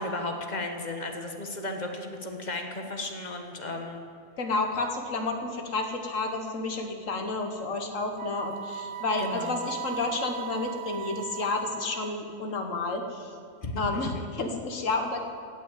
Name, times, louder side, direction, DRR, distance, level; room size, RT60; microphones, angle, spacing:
voice 1, 0.0-4.0 9.2-9.6 13.6-14.2, left 2 dB, 35° left, 4 dB, 1.3 m, -34 dB
voice 2, 4.4-13.3 13.8-15.2, left 3 dB, 75° left, 5 dB, 1.7 m, -31 dB
Wind instrument woodwind instrument, 8.1-12.3, right 10 dB, 70° right, 0.9 m, -38 dB
16.0 x 6.2 x 9.1 m, 2.2 s
omnidirectional pair, 1.4 m